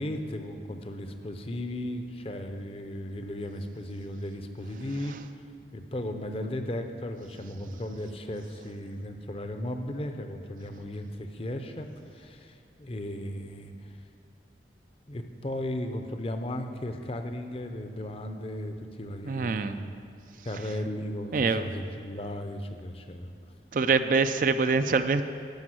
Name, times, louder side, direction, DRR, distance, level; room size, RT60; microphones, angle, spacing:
voice 1, 0.0-5.1 5.7-11.9 12.1-13.7 15.1-19.9 20.4-23.3, left 1 dB, 35° left, 6 dB, 0.6 m, -36 dB
voice 2, 19.3-19.8 21.3-21.6 23.7-25.2, right 4 dB, 50° right, 10 dB, 0.4 m, -25 dB
12.0 x 5.2 x 7.8 m, 2.3 s
head